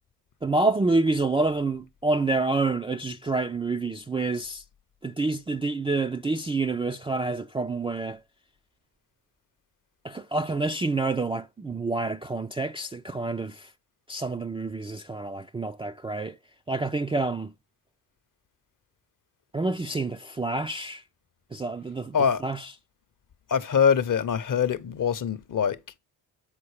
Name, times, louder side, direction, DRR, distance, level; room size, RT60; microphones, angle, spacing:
voice 1, 0.4-4.6 5.0-8.2 10.0-13.7 14.1-16.4 16.7-17.5 19.5-21.0 21.5-22.2 22.4-22.7, right 3 dB, 10° right, 0.4 m, -28 dB
voice 2, 23.5-25.8, left 7 dB, 40° left, 0.8 m, -23 dB
7.5 x 4.2 x 4.8 m
hypercardioid pair, 45°, 48 cm